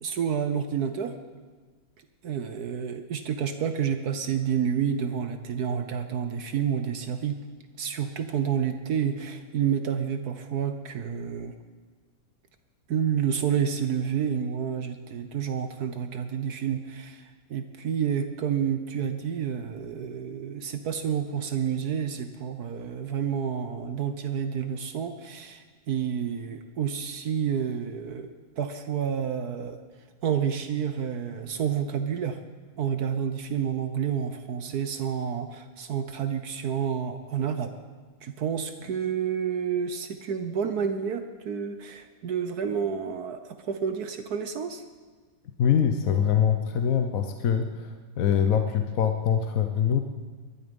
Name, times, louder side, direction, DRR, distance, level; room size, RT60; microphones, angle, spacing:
voice 1, 0.0-1.1 2.2-7.4 7.8-11.5 12.9-28.3 28.6-29.8 30.2-32.4 32.8-37.7 38.2-44.8, right 8 dB, 60° right, 8 dB, 1.2 m, -29 dB
voice 2, 45.6-50.0, left 8 dB, 55° left, 6 dB, 1.0 m, -24 dB
20.5 x 12.0 x 5.3 m, 1.5 s
omnidirectional pair, 2.2 m